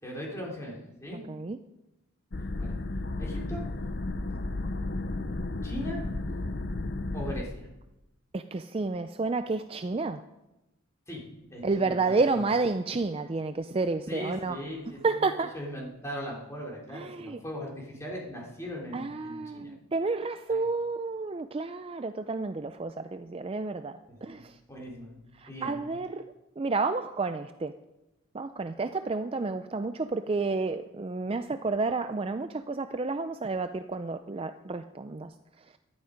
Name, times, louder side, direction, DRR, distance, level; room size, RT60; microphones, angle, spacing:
voice 1, 0.0-1.2 2.6-2.7 3.2-3.6 5.6-6.0 7.1-7.7 11.1-11.2 11.5-12.5 14.1-19.7 20.5-20.6 24.2-24.4 24.7-25.1 25.5-25.8, equal, 15° left, -3 dB, 3.5 m, -39 dB
voice 2, 1.3-1.6 8.3-10.2 11.6-14.6 15.0-15.5 16.9-17.4 18.9-24.6 25.4-26.2 26.6-27.7 28.3-35.3, right 3 dB, 25° right, 9 dB, 0.4 m, -30 dB
sound 1, 2.3-7.4, left 2 dB, 50° left, 0.8 m, -33 dB
15.5 x 12.0 x 5.2 m, 0.96 s
head